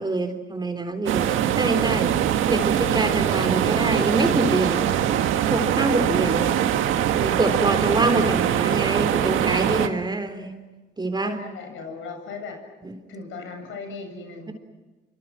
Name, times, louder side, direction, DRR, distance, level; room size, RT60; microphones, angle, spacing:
voice 1, 0.0-2.1 2.5-4.9 5.5-6.5 7.1-10.6 11.0-11.4 12.8-12.9, right 2 dB, 20° right, 8 dB, 4.0 m, -25 dB
sound 1, 1.1-9.9, right 10 dB, 85° right, 1.8 m, -22 dB
voice 2, 11.2-12.6 13.1-14.5, left 4 dB, 80° left, 4 dB, 7.9 m, -37 dB
29.0 x 26.0 x 6.1 m, 1.2 s
cardioid pair, 90°, 20 cm